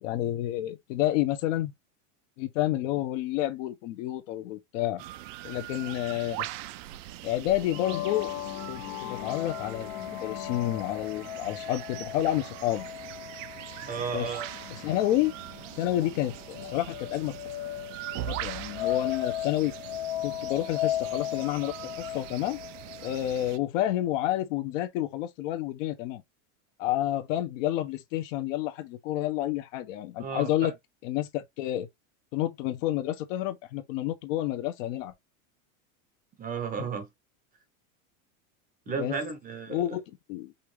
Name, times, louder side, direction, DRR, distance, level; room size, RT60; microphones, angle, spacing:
voice 1, 0.0-1.7 2.4-5.0 5.4-6.5 7.2-8.3 8.7-12.8 14.1-14.3 14.7-15.3 15.8-17.4 18.3-19.7 20.2-22.6 23.0-26.2 26.8-30.7 31.0-31.9 32.3-35.1 39.0-39.2 39.7-40.5, left 13 dB, 60° left, 0.9 m, -29 dB
sound 1, 5.0-23.6, right 15 dB, 60° right, 0.6 m, -42 dB
sound 2, 7.6-23.2, left 13 dB, 45° left, 0.5 m, -37 dB
voice 2, 13.8-14.5 30.2-30.7 36.4-37.1 38.9-39.8, right 5 dB, 20° right, 0.7 m, -33 dB
5.5 x 2.5 x 3.2 m
supercardioid pair, 140°, 42 cm